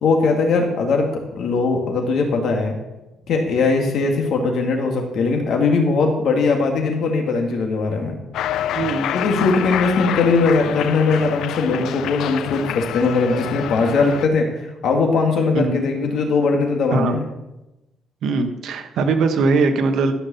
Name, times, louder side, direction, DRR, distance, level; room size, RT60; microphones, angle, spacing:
voice 1, 0.0-2.8 3.3-8.1 9.1-17.3, left 4 dB, 65° left, 2 dB, 2.2 m, -20 dB
Cheering, 8.3-14.3, left 11 dB, 85° left, 0.4 m, -27 dB
voice 2, 8.7-9.1 15.5-15.8 16.9-17.1 18.2-20.1, right 4 dB, 65° right, 7 dB, 1.2 m, -20 dB
13.0 x 5.6 x 7.0 m, 0.99 s
cardioid pair, 160°, 0 cm